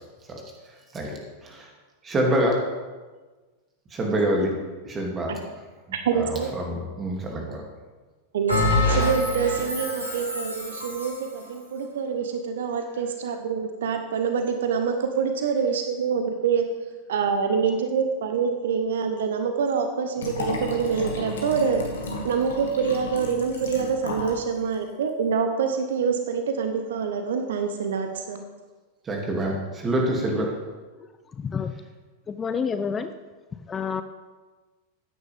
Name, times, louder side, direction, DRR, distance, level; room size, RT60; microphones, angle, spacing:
voice 1, 2.0-2.6 3.9-4.5 4.8-5.3 6.2-7.6 29.1-30.5, right 1 dB, 20° right, 0 dB, 2.6 m, -26 dB
voice 2, 5.9-6.5 8.3-16.6 17.1-21.8 22.2-28.5, right 6 dB, 60° right, 7 dB, 0.9 m, -26 dB
Bell, 8.5-11.3, left 1 dB, 85° right, 3.5 m, -25 dB
Liquid, 20.2-24.4 24.7-24.8, left 2 dB, 65° left, 2.0 m, -33 dB
voice 3, 31.3-31.7 32.3-33.1 33.7-34.0, left 6 dB, 20° left, 10 dB, 0.5 m, -28 dB
15.0 x 9.7 x 3.5 m, 1.3 s
figure-of-eight pair, 90°, 0 cm